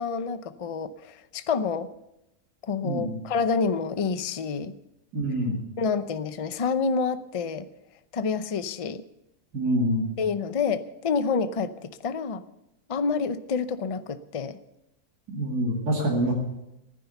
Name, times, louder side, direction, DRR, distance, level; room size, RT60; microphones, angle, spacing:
voice 1, 0.0-1.9 2.7-4.7 5.8-7.7 8.1-9.0 10.2-12.4 12.9-14.6, left 5 dB, 60° left, 12 dB, 0.3 m, -28 dB
voice 2, 2.8-3.2 5.1-5.6 9.5-10.1 15.3-16.3, right 1 dB, 80° right, -2 dB, 2.8 m, -25 dB
15.5 x 10.0 x 6.8 m, 0.89 s
omnidirectional pair, 1.7 m